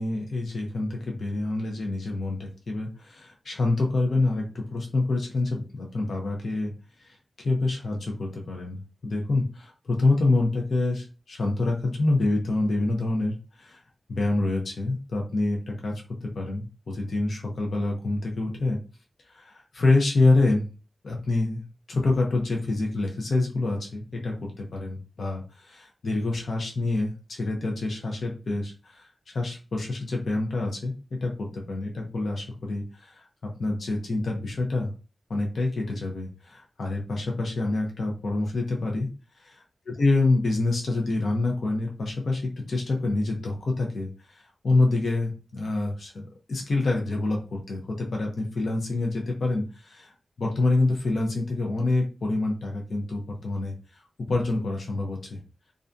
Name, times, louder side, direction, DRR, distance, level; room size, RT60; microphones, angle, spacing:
voice 1, 0.0-6.7 7.0-7.2 7.4-13.8 14.1-15.9 16.2-18.8 19.3-20.7 21.0-29.1 29.3-30.9 31.2-33.3 33.6-34.9 35.3-39.1 39.4-39.6 40.0-42.4 42.7-50.1 50.4-53.7 54.3-55.4, left 2 dB, 60° left, 0 dB, 0.6 m, -26 dB
2.4 x 2.2 x 2.5 m, 0.33 s
wide cardioid pair, 160°, 0 cm